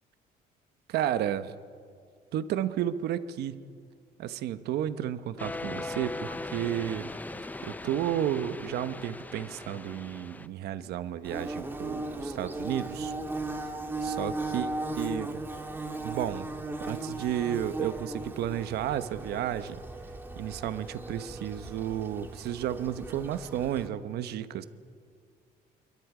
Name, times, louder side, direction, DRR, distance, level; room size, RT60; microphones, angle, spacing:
voice 1, 0.9-1.5 2.3-3.6 4.2-7.1 7.6-13.1 14.0-14.7 15.0-15.4 16.0-16.5 16.9-19.8 20.4-24.6, right 11 dB, 75° right, 12 dB, 1.1 m, -32 dB
sound 1, 5.4-10.5, left 2 dB, 10° left, 0.6 m, -39 dB
Bird / Buzz, 11.2-23.9, right 2 dB, 10° right, 1.8 m, -37 dB
27.5 x 23.0 x 5.0 m, 2.2 s
cardioid pair, 110°, 17 cm